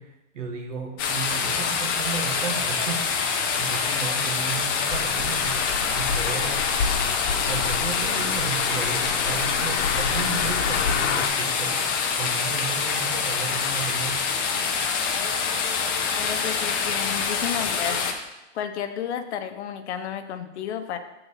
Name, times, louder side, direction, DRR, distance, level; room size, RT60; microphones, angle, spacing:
voice 1, 0.0-6.7 7.5-14.3, right 5 dB, 80° right, 3 dB, 1.7 m, -34 dB
sound 1, 1.0-18.1, left 5 dB, 20° left, 0.4 m, -26 dB
sound 2, 4.9-11.3, left 6 dB, 90° left, 1.0 m, -29 dB
voice 2, 16.2-18.1 18.5-21.0, left 9 dB, 65° left, 7 dB, 0.9 m, -32 dB
7.7 x 4.0 x 6.3 m, 0.97 s
supercardioid pair, 165°, 36 cm